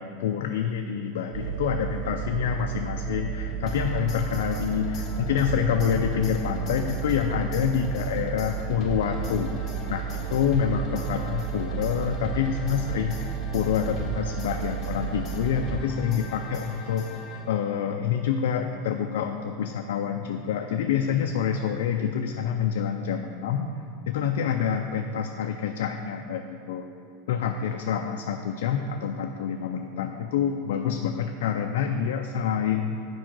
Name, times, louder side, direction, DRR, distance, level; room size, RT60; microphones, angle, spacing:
voice 1, 0.0-9.5 9.9-17.1 17.5-23.7 24.1-26.8 27.3-32.9, left 8 dB, 80° left, 4 dB, 0.4 m, -27 dB
sound 1, 1.3-15.8, right 9 dB, 60° right, 0.6 m, -33 dB
sound 2, 3.7-17.8, left 2 dB, 30° left, 1.2 m, -40 dB
7.5 x 4.7 x 6.0 m, 2.5 s
supercardioid pair, 135°, 0 cm